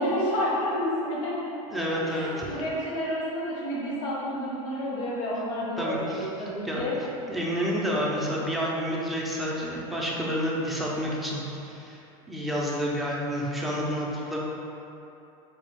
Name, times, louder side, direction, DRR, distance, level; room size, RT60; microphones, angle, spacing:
voice 1, 0.0-1.3 1.7-6.9, equal, 70° left, -6 dB, 1.0 m, -30 dB
voice 2, 1.7-2.5 5.8-6.3 6.6-6.8 7.3-12.0 12.3-14.4, equal, ahead, -5 dB, 0.4 m, -29 dB
4.1 x 2.3 x 4.5 m, 2.9 s
supercardioid pair, 155°, 18 cm